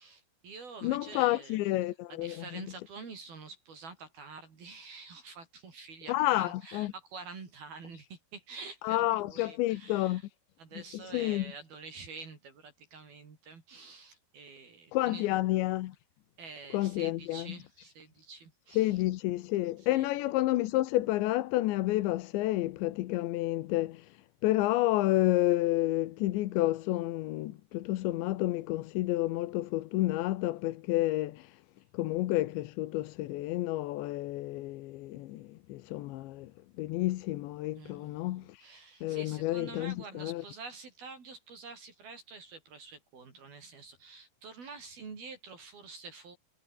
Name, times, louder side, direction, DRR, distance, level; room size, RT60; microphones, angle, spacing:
voice 1, 0.0-1.6 2.1-10.3 10.6-15.4 16.4-19.0 19.8-20.1 37.8-46.4, right 4 dB, 60° right, 6.6 m, -47 dB
voice 2, 0.8-2.6 6.1-6.9 8.8-10.2 11.1-11.5 14.9-16.0 16.7-17.6 18.8-24.1 24.4-31.6 31.9-36.5 36.8-38.6 39.0-40.4, left 16 dB, 90° left, 3.4 m, -30 dB
omnidirectional pair, 5.0 m